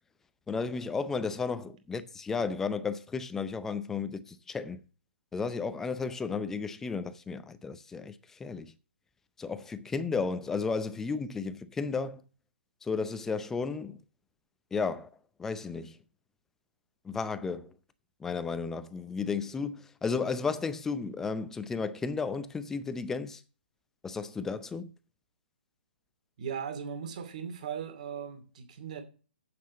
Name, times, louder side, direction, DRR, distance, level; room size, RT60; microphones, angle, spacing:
voice 1, 0.5-4.2 4.5-4.8 5.3-8.1 8.4-8.7 9.4-12.2 12.9-14.0 14.7-15.1 15.4-15.9 17.1-17.7 18.2-23.4 24.0-24.9, left 5 dB, 5° left, 0.6 m, -33 dB
voice 2, 26.4-29.0, right 7 dB, 45° right, 2.7 m, -38 dB
7.8 x 7.3 x 7.0 m
figure-of-eight pair, 135°, 6 cm